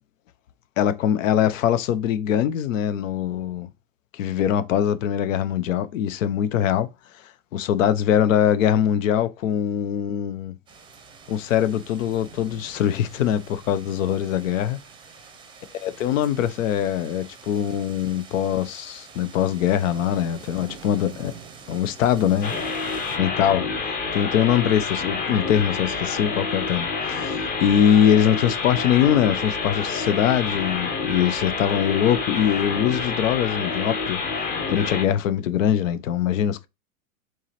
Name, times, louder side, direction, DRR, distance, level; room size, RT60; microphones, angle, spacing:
voice 1, 0.8-3.7 4.1-6.9 7.5-10.5 11.3-14.8 15.8-21.3 21.7-22.5 23.2-23.6 24.1-34.2 34.7-36.7, left 9 dB, 65° left, 0.7 m, -22 dB
sound 1, 10.7-23.2, right 5 dB, 10° right, 0.7 m, -45 dB
sound 2, 22.4-35.0, left 4 dB, 20° left, 0.9 m, -28 dB
4.6 x 2.9 x 3.0 m
hypercardioid pair, 125°, 43 cm